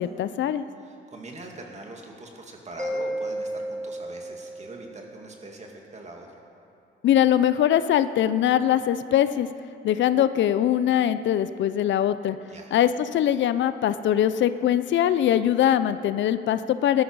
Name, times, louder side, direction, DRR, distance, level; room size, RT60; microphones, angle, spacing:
voice 1, 0.0-0.6 7.0-9.5 9.8-12.4 12.7-17.0, left 11 dB, 70° left, 13 dB, 0.5 m, -22 dB
voice 2, 0.8-6.4 12.5-12.7, right 2 dB, 35° right, 1 dB, 2.3 m, -42 dB
Mallet percussion, 2.8-5.3, right 1 dB, 5° left, 1.2 m, -33 dB
15.5 x 12.5 x 4.8 m, 2.7 s
cardioid pair, 90°, 20 cm